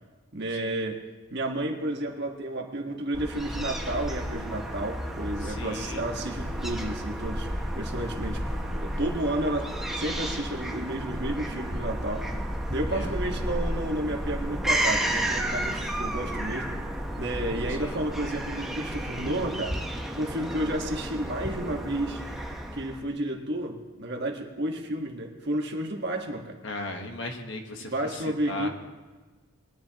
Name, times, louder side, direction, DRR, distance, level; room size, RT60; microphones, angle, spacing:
voice 1, 0.3-1.0 1.3-7.5 7.7-8.4 8.8-12.3 12.7-16.7 17.2-19.8 20.2-22.2 22.7-26.5 27.8-28.7, right 1 dB, 50° right, 2 dB, 1.4 m, -31 dB
Fowl / Gull seagull, 3.1-23.0, right 1 dB, ahead, 0.9 m, -32 dB
voice 2, 5.4-6.0 12.9-13.1 17.8-18.0 26.6-28.7, left 2 dB, 55° left, 4 dB, 1.3 m, -37 dB
21.5 x 10.5 x 2.9 m, 1.3 s
head